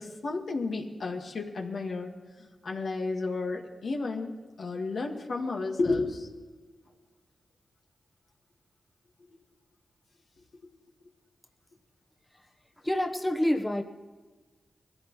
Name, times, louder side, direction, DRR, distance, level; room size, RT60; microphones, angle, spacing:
voice 1, 0.0-2.1 2.4-4.3 4.6-6.3 10.6-10.7, left 3 dB, 70° left, 1 dB, 1.9 m, -32 dB
voice 2, 12.8-13.8, left 1 dB, 15° left, 3 dB, 1.1 m, -27 dB
21.5 x 15.0 x 3.2 m, 1.3 s
cardioid pair, 45°, 0 cm